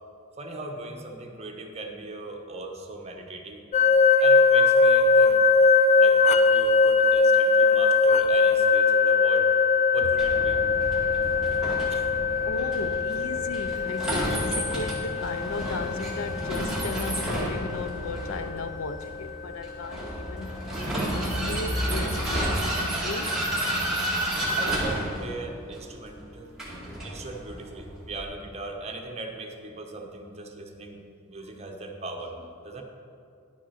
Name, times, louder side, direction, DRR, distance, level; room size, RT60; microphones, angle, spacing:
voice 1, 0.4-3.6 4.2-5.4 6.0-9.5 9.9-10.6 11.9-12.2 24.6-26.6 27.0-32.8, right 2 dB, 30° right, 1.0 m, -39 dB
sound 1, 3.7-18.6, left 4 dB, 35° left, 0.3 m, -21 dB
Vehicle, 10.2-28.2, right 1 dB, ahead, 2.0 m, -31 dB
voice 2, 12.4-20.6 21.3-23.4, left 3 dB, 90° left, 0.5 m, -36 dB
11.0 x 6.2 x 5.7 m
head